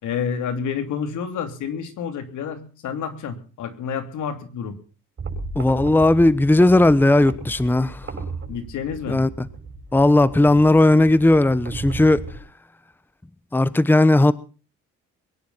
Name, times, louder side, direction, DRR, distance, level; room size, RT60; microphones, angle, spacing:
voice 1, 0.0-4.8 8.5-9.2, left 7 dB, 75° left, 3.2 m, -29 dB
sound 1, 5.2-12.4, right 3 dB, 40° right, 7.3 m, -35 dB
voice 2, 5.5-8.0 9.1-9.5 9.9-12.2 13.5-14.3, left 2 dB, 5° left, 0.9 m, -16 dB
22.5 x 10.5 x 5.6 m
cardioid pair, 90°, 30 cm